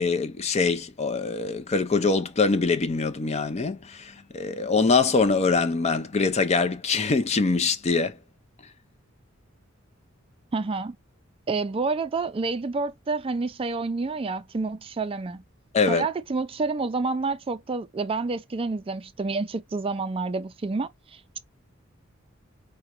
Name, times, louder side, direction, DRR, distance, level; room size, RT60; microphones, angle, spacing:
voice 1, 0.0-8.2 15.7-16.1, left 4 dB, 35° left, 0.5 m, -24 dB
voice 2, 10.5-11.0 11.5-15.4 15.9-21.4, right 3 dB, 30° right, 0.4 m, -29 dB
4.9 x 2.2 x 2.9 m
head